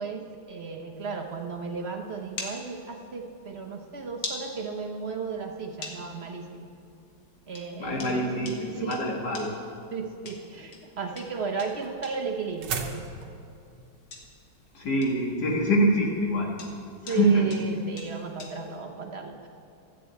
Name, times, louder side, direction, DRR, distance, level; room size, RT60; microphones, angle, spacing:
voice 1, 0.0-6.7 7.5-8.2 8.6-9.0 9.9-13.1 17.0-19.5, right 5 dB, 45° right, 3 dB, 0.9 m, -34 dB
sound 1, 0.9-18.8, left 3 dB, 80° left, 2.2 m, -46 dB
voice 2, 7.8-9.5 14.7-16.5 17.1-17.4, right 1 dB, 60° left, -1 dB, 2.4 m, -25 dB
sound 2, 10.9-16.1, right 5 dB, 70° right, 1.6 m, -39 dB
13.0 x 7.6 x 8.3 m, 2.6 s
omnidirectional pair, 2.0 m